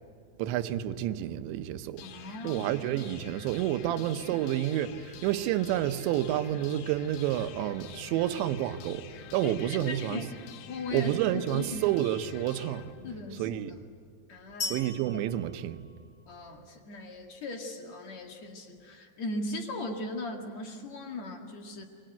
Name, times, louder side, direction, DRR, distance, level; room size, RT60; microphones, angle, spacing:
voice 1, 0.4-2.0 2.4-9.0 9.3-10.2 10.9-12.8 13.4-13.7 14.6-15.9, right 12 dB, 80° right, 3.1 m, -29 dB
sound 1, 2.0-13.9, left 8 dB, 70° left, 3.1 m, -48 dB
voice 2, 2.0-2.7 4.0-4.1 9.4-10.3 10.7-11.2 11.5-11.9 13.0-13.6 14.3-14.8 16.3-21.8, left 2 dB, 45° left, 2.6 m, -38 dB
sound 2, 14.6-16.5, left 2 dB, 25° left, 2.4 m, -39 dB
27.0 x 23.5 x 9.1 m
omnidirectional pair, 5.2 m